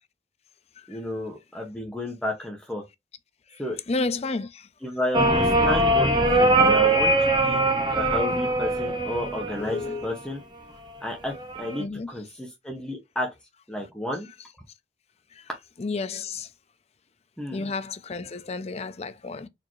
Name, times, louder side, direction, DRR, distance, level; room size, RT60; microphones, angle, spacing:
voice 1, 0.9-2.8 3.6-3.8 4.8-7.6 7.9-10.4 11.0-13.3 13.7-14.3 17.4-17.7, left 1 dB, 5° left, 0.8 m, -32 dB
voice 2, 3.9-4.5 9.6-10.1 11.8-12.1 15.8-16.5 17.5-19.5, left 3 dB, 35° left, 0.5 m, -31 dB
sound 1, 5.1-10.2 11.3-11.8, right 2 dB, 25° right, 0.7 m, -22 dB
4.2 x 2.8 x 3.1 m
head